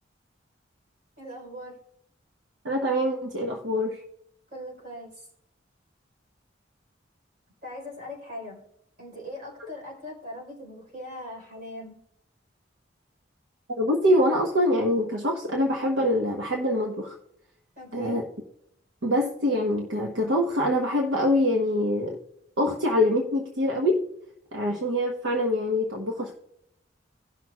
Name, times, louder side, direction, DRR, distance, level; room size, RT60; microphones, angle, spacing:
voice 1, 1.2-1.7 4.5-5.3 7.6-8.6 9.0-12.0 17.8-18.2, equal, 45° right, -2 dB, 4.1 m, -40 dB
voice 2, 2.6-4.0 13.8-17.2 17.9-18.2 19.0-22.2 22.6-24.1 24.5-26.3, left 1 dB, 70° right, 1 dB, 1.0 m, -24 dB
17.5 x 6.1 x 2.3 m, 0.75 s
head